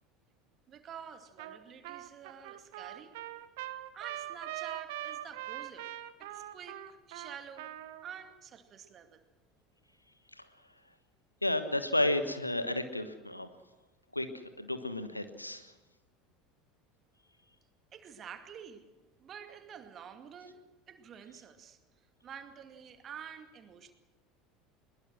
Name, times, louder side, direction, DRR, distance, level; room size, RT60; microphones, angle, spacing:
voice 1, 0.7-3.2 3.9-5.9 6.2-7.7 8.0-9.2 17.9-18.9 19.2-21.8 22.2-23.9, right 8 dB, 35° right, 7 dB, 2.3 m, -48 dB
Trumpet, 1.4-1.6 1.8-8.1, right 14 dB, 60° right, 1.2 m, -42 dB
voice 2, 11.4-13.5 14.1-14.3 14.6-15.7, left 1 dB, 85° left, 10 dB, 1.3 m, -31 dB
22.0 x 21.5 x 6.3 m, 1.2 s
figure-of-eight pair, 70°, 0 cm